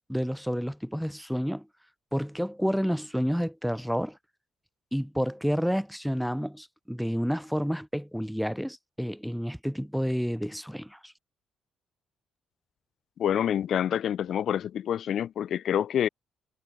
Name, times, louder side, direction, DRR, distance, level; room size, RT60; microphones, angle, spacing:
voice 1, 0.1-1.7 2.1-4.2 4.9-11.1, equal, ahead, 3.8 m, -30 dB
voice 2, 13.2-16.1, left 9 dB, 65° left, 4.0 m, -27 dB
cardioid pair, 105°, 0 cm